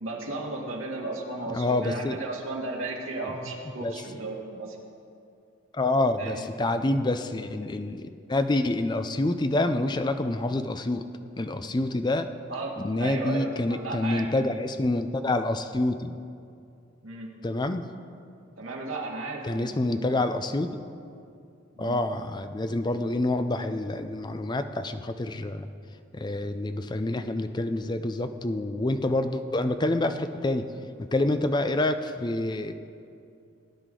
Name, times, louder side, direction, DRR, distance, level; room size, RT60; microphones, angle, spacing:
voice 1, 0.0-4.8 6.2-6.5 12.5-14.3 17.0-17.3 18.6-20.1 21.8-22.0, right 2 dB, 80° right, -1 dB, 1.9 m, -35 dB
voice 2, 1.5-2.2 3.8-3.9 5.7-11.1 11.4-12.3 12.8-16.2 17.4-17.8 19.4-20.7 21.8-25.7 26.1-30.7 31.1-32.7, left 2 dB, 20° left, 9 dB, 0.4 m, -27 dB
18.5 x 10.0 x 3.8 m, 2.5 s
head